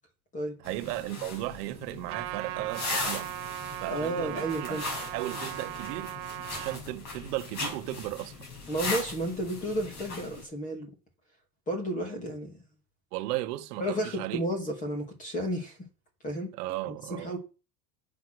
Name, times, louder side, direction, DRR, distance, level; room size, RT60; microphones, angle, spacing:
sound 1, 0.6-10.4, left 3 dB, 45° left, 5.9 m, -38 dB
voice 1, 0.6-3.3 3.8-4.8 5.1-6.1 6.5-8.4 13.1-14.4 16.5-17.3, right 17 dB, 75° right, 1.2 m, -35 dB
Trumpet, 2.1-6.8, right 17 dB, 45° right, 1.0 m, -38 dB
voice 2, 3.9-4.9 8.7-10.9 11.7-12.6 13.8-15.8 16.2-16.5 17.1-17.4, right 1 dB, 15° left, 2.6 m, -32 dB
8.0 x 6.7 x 6.2 m
cardioid pair, 175°, 48 cm